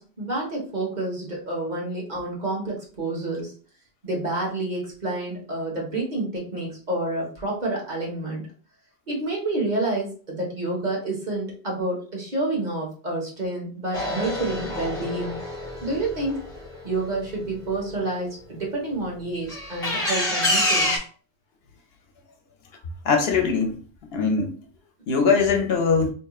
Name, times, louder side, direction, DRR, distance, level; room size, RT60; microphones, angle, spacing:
voice 1, 0.0-3.5 4.0-8.4 9.1-15.4 15.8-16.4 16.8-21.0, right 2 dB, 45° right, 1.4 m, -29 dB
sound 1, 13.9-17.7 19.5-21.0, left 1 dB, 30° left, 1.4 m, -27 dB
voice 2, 23.0-23.7 24.1-24.6 25.1-26.1, left 5 dB, 65° left, 0.9 m, -21 dB
4.4 x 2.9 x 2.3 m
omnidirectional pair, 1.1 m